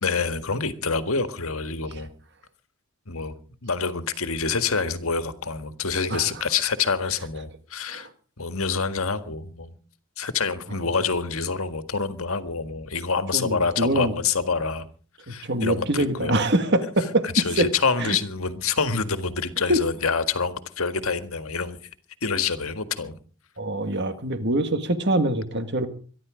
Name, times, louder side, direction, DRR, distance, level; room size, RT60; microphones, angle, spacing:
voice 1, 0.0-2.1 3.1-8.1 8.4-9.7 10.2-14.9 15.2-16.4 17.2-21.8 22.2-23.2, left 5 dB, 70° left, 9 dB, 1.7 m, -27 dB
voice 2, 13.3-14.1 15.4-17.2 17.6-17.7 18.0-18.1 19.7-19.8 23.6-25.9, right 1 dB, 50° right, 9 dB, 1.8 m, -24 dB
23.0 x 11.5 x 5.0 m, 0.42 s
head